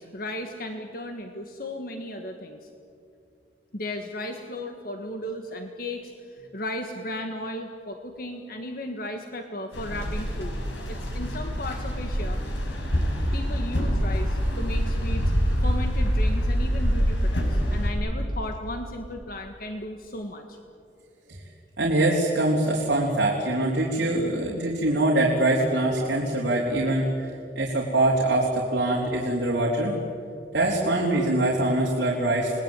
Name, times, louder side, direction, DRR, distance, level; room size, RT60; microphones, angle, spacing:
voice 1, 0.0-2.6 3.7-10.6 10.9-12.4 13.3-15.2 15.6-20.6, left 1 dB, 50° left, 4 dB, 1.7 m, -35 dB
sound 1, 9.7-17.9, equal, 85° left, 6.0 m, -25 dB
voice 2, 21.8-27.3 27.6-29.9 30.5-32.6, right 1 dB, 70° right, -3 dB, 3.8 m, -23 dB
29.5 x 20.5 x 9.1 m, 2.5 s
head